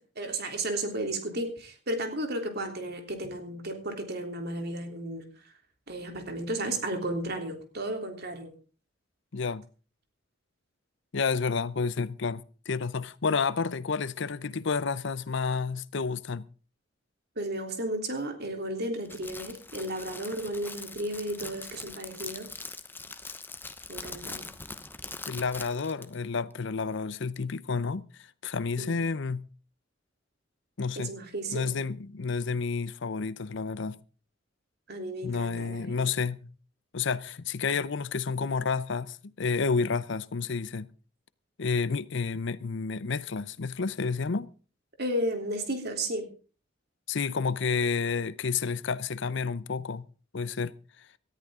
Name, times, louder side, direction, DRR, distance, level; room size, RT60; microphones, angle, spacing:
voice 1, 0.1-5.2 5.9-8.5 17.4-22.5 23.9-24.5 28.8-29.0 30.9-31.7 34.9-36.2 45.0-46.3, right 1 dB, 55° right, 3.4 m, -33 dB
voice 2, 9.3-9.6 11.1-16.5 25.3-28.1 28.4-29.4 30.8-31.1 31.5-34.0 35.2-36.5 36.9-40.9 41.6-44.5 47.1-50.1 50.3-50.7, left 5 dB, 65° left, 0.7 m, -30 dB
Crackle, 19.0-26.1, left 3 dB, 10° left, 0.9 m, -42 dB
18.5 x 13.5 x 3.7 m
head